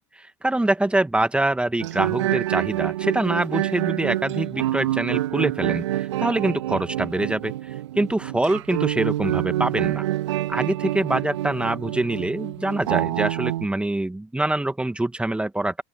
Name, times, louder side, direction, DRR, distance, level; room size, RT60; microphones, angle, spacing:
voice 1, 0.0-10.1 10.5-15.8, right 1 dB, 5° right, 2.5 m, -25 dB
sound 1, 1.8-13.7, right 14 dB, 70° right, 3.5 m, -27 dB
open air
figure-of-eight pair, 75°, 16 cm